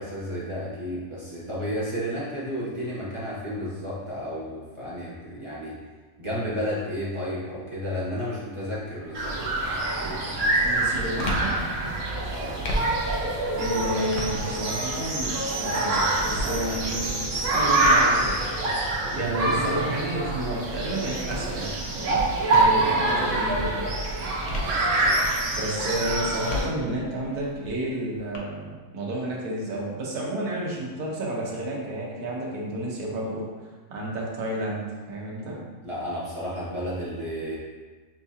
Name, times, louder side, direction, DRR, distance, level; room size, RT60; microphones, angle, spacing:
voice 1, 0.0-5.8 6.2-9.4 12.3-12.6 24.4-25.2 35.8-37.6, equal, 30° right, -9 dB, 0.6 m, -32 dB
sound 1, 8.7-9.1 9.5-23.1 23.5-25.4 25.8-28.4, left 1 dB, 75° left, 0.4 m, -37 dB
sound 2, 9.1-26.6, right 2 dB, 60° right, 1.0 m, -25 dB
voice 2, 10.6-11.6 13.5-18.3 18.8-18.9 19.1-22.3 22.5-23.9 25.5-33.5 33.9-35.6, right 1 dB, 85° right, -4 dB, 1.4 m, -31 dB
5.9 x 2.7 x 2.4 m, 1.4 s
omnidirectional pair, 1.6 m